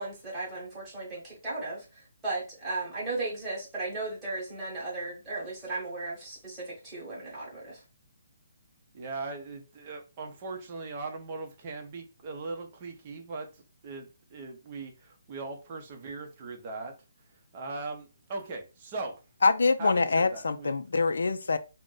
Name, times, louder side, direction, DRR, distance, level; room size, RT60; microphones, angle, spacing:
voice 1, 0.0-1.8 2.2-7.8, right 2 dB, 10° right, 1.1 m, -36 dB
voice 2, 8.9-16.9 17.5-19.2 19.8-20.7, right 3 dB, 30° right, 0.6 m, -39 dB
voice 3, 19.4-21.6, left 4 dB, 80° left, 0.3 m, -25 dB
2.5 x 2.1 x 3.7 m
hypercardioid pair, 170°, 0 cm